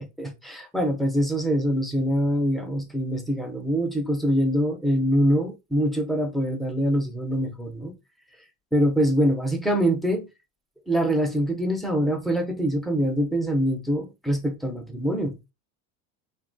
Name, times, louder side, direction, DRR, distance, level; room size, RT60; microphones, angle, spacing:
voice 1, 0.2-7.9 8.7-10.3 10.9-15.4, equal, ahead, 0.4 m, -24 dB
2.8 x 2.2 x 2.5 m
supercardioid pair, 100°, 40 cm